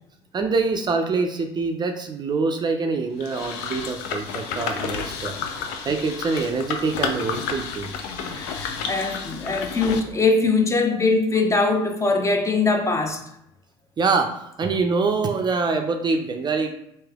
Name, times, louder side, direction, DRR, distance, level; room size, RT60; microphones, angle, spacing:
voice 1, 0.3-5.3 5.8-7.9 14.0-16.7, right 4 dB, 30° right, 0.4 m, -25 dB
sound 1, 3.2-10.0, left 6 dB, 70° left, 0.4 m, -31 dB
voice 2, 8.2-13.2, left 3 dB, 20° left, 0.7 m, -22 dB
3.2 x 2.7 x 3.5 m
hypercardioid pair, 60°, 14 cm